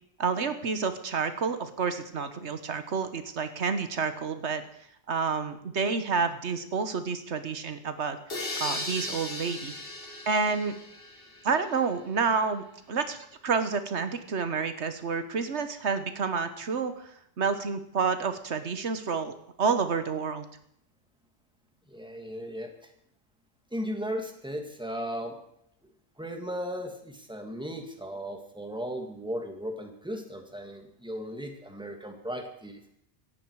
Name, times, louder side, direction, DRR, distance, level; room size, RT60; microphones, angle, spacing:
voice 1, 0.2-4.6 5.1-8.2 8.6-9.7 10.3-10.8 11.4-13.2 13.4-20.5, right 5 dB, 80° right, 10 dB, 1.5 m, -29 dB
sound 1, 8.3-12.0, left 2 dB, 55° left, 2.3 m, -37 dB
voice 2, 21.9-22.7 23.7-25.4 26.2-32.8, equal, 5° right, 4 dB, 2.2 m, -36 dB
17.5 x 14.5 x 4.8 m, 0.74 s
omnidirectional pair, 1.1 m